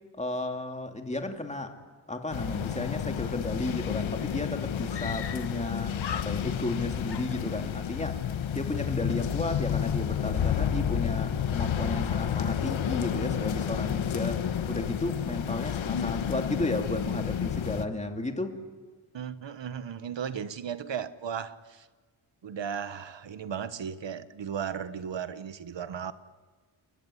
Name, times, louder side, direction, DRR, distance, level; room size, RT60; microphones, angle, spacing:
voice 1, 0.1-1.8 2.1-8.2 8.5-18.6, left 2 dB, 15° left, 2.5 m, -33 dB
sound 1, 2.3-17.8, left 8 dB, 85° left, 1.3 m, -30 dB
Screaming, 4.9-5.7 5.9-6.7 7.1-8.0, left 9 dB, 60° left, 1.0 m, -40 dB
voice 2, 19.1-21.9 22.4-26.1, right 8 dB, 65° right, 1.4 m, -36 dB
28.5 x 20.5 x 9.9 m
wide cardioid pair, 105°, 46 cm